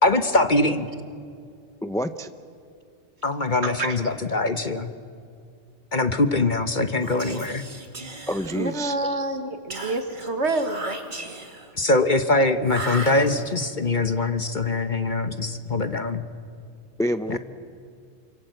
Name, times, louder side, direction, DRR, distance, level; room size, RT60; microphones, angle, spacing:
voice 1, 0.0-0.9 3.2-4.9 5.9-7.6 11.7-16.2 17.3-17.4, left 2 dB, 40° left, 9 dB, 1.2 m, -23 dB
voice 2, 1.8-2.3 8.3-9.0 17.0-17.4, equal, 5° left, 9 dB, 0.5 m, -27 dB
voice 3, 3.6-4.0 8.5-11.0, right 2 dB, 60° right, 7 dB, 2.0 m, -27 dB
Whispering, 7.0-9.0 9.7-11.7 12.6-13.7, right 2 dB, 35° right, 2.3 m, -36 dB
28.5 x 25.5 x 7.9 m, 2.3 s
omnidirectional pair, 1.3 m